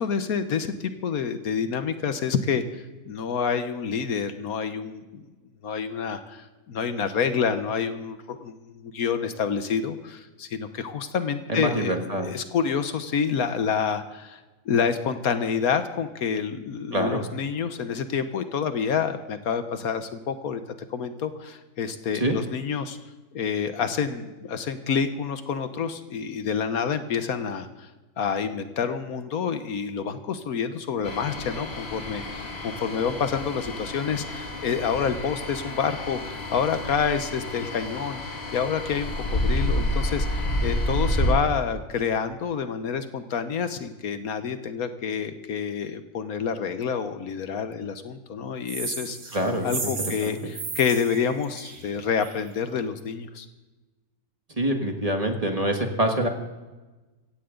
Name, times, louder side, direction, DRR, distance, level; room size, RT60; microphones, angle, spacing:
voice 1, 0.0-2.6 3.0-5.3 5.6-20.6 20.9-23.0 23.3-27.9 28.2-49.4 49.6-53.5, left 6 dB, 70° left, 10 dB, 1.4 m, -28 dB
voice 2, 11.5-12.3 16.9-17.2 22.1-22.4 49.3-49.9 50.2-50.4 54.6-56.3, right 1 dB, 25° right, 3 dB, 1.6 m, -25 dB
sound 1, 31.0-41.3, left 1 dB, 45° left, 2.1 m, -29 dB
sound 2, 48.7-52.5, right 4 dB, 85° right, 2.6 m, -35 dB
16.5 x 16.0 x 3.8 m, 1.2 s
omnidirectional pair, 1.6 m